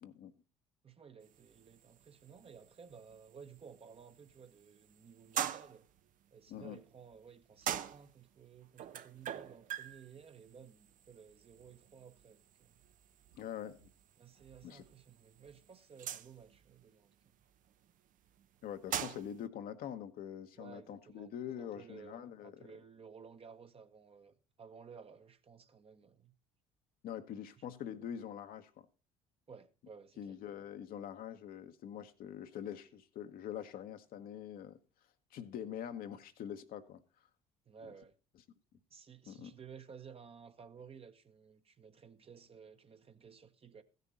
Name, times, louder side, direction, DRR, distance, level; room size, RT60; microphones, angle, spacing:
voice 1, 0.0-0.3 6.5-6.8 13.3-13.9 14.6-14.8 18.6-22.5 27.0-28.9 30.2-34.8 35.3-37.0 39.3-39.5, left 9 dB, 60° left, 1.1 m, -44 dB
voice 2, 0.8-5.9 6.3-12.8 14.2-17.3 20.6-21.3 21.6-26.3 29.5-30.4 37.6-38.2 38.9-43.8, right 6 dB, 35° right, 1.2 m, -55 dB
sound 1, 1.2-19.4, right 10 dB, 50° right, 0.7 m, -45 dB
15.5 x 6.7 x 4.0 m
hypercardioid pair, 60°, 17 cm